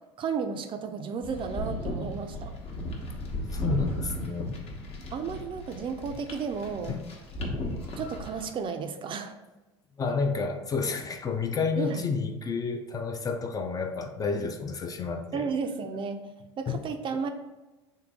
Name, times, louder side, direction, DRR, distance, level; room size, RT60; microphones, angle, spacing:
voice 1, 0.2-2.5 5.1-6.9 8.0-9.4 11.8-12.1 15.3-16.3 16.6-17.3, right 5 dB, 35° right, 7 dB, 0.4 m, -33 dB
sound 1, 1.2-8.5, equal, 45° left, 1.0 m, -35 dB
voice 2, 3.5-4.6 6.9-7.1 10.0-15.4 16.7-16.8, left 5 dB, 25° left, 6 dB, 0.4 m, -30 dB
3.7 x 2.7 x 3.5 m, 1.1 s
hypercardioid pair, 80°, 15 cm